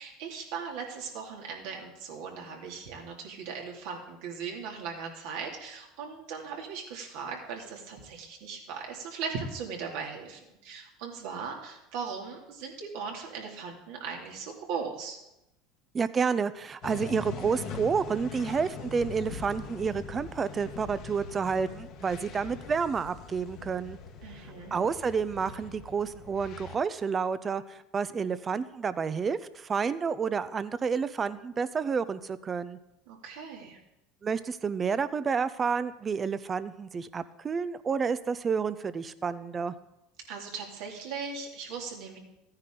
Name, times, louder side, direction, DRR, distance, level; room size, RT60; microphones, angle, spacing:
voice 1, 0.0-15.2 24.2-24.8 33.1-33.8 40.3-42.2, right 5 dB, 70° right, 0 dB, 2.6 m, -38 dB
voice 2, 15.9-24.0 24.7-32.8 34.2-39.7, right 6 dB, 30° right, 15 dB, 0.7 m, -30 dB
sound 1, 16.8-26.8, left 5 dB, 55° left, 1.4 m, -42 dB
14.5 x 9.8 x 3.9 m, 0.90 s
hypercardioid pair, 90°, 0 cm